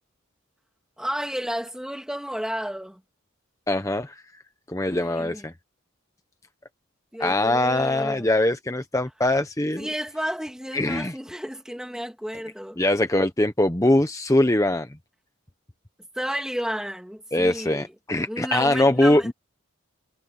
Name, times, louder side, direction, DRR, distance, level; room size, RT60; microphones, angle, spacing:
voice 1, 1.0-3.0 4.9-5.5 7.1-8.3 9.8-12.8 16.1-17.9 18.3-19.3, equal, 5° right, 2.7 m, -32 dB
voice 2, 3.7-4.2 4.7-5.5 7.2-9.9 10.7-11.1 12.8-14.9 17.3-19.3, left 1 dB, 15° left, 0.8 m, -22 dB
head